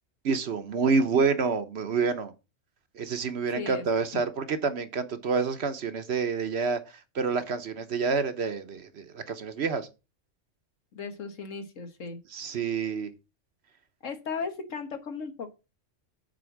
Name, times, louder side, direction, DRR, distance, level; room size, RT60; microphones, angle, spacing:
voice 1, 0.2-2.3 3.0-6.8 7.1-9.9 12.3-13.1, right 5 dB, 60° right, 1.1 m, -28 dB
voice 2, 3.5-3.8 10.9-12.2 14.0-15.5, left 5 dB, 80° left, 1.7 m, -36 dB
7.8 x 4.4 x 7.1 m
omnidirectional pair, 1.3 m